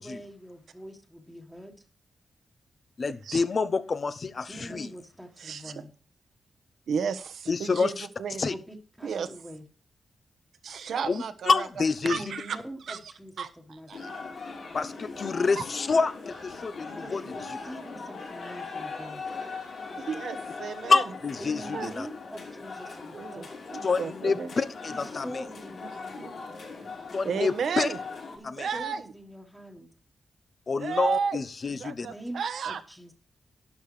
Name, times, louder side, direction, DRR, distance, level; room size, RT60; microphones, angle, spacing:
voice 1, 0.0-1.8 4.4-5.9 8.5-9.7 12.0-14.0 16.9-19.2 21.4-23.5 24.9-26.4 28.4-29.9 32.1-33.2, equal, ahead, 1.6 m, -44 dB
voice 2, 3.0-4.9 7.5-8.1 8.4-8.5 11.1-12.2 14.7-17.2 20.9-22.1 23.8-25.3 27.1-27.9 28.4-28.7 30.7-32.1, left 4 dB, 45° left, 0.7 m, -27 dB
voice 3, 5.4-5.7 6.9-7.9 8.2-8.4 9.0-9.3 10.6-11.7 12.0-12.6 12.9-13.0 13.4-13.5 13.9-14.2 15.6-15.7 20.0-21.0 21.7-21.9 23.1-24.5 26.2-26.3 27.2-28.0 28.6-29.0 30.7-31.4 31.8-32.8, right 6 dB, 85° right, 1.1 m, -32 dB
sound 1, 13.9-28.4, left 4 dB, 75° left, 5.1 m, -40 dB
12.0 x 10.0 x 3.3 m
wide cardioid pair, 125°, 0 cm